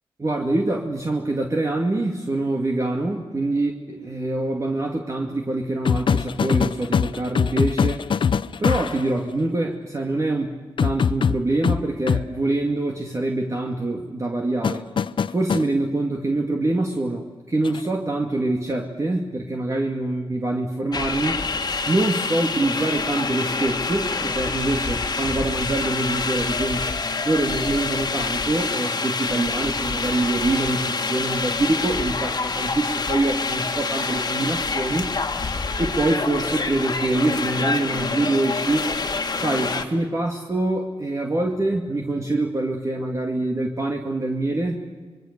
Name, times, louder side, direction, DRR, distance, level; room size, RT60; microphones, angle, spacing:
voice 1, 0.2-8.1 8.6-14.8 15.3-21.4 21.9-26.9 27.2-35.1 35.8-38.9 39.4-44.7, right 2 dB, 35° right, 1 dB, 2.4 m, -25 dB
sound 1, 5.8-9.1 10.8-12.3 14.6-15.7 17.6-17.9, left 6 dB, 65° left, 0.6 m, -22 dB
sound 2, 20.9-39.8, left 4 dB, 50° left, 1.9 m, -26 dB
26.5 x 23.0 x 6.8 m, 1.5 s
cardioid pair, 75°, 9 cm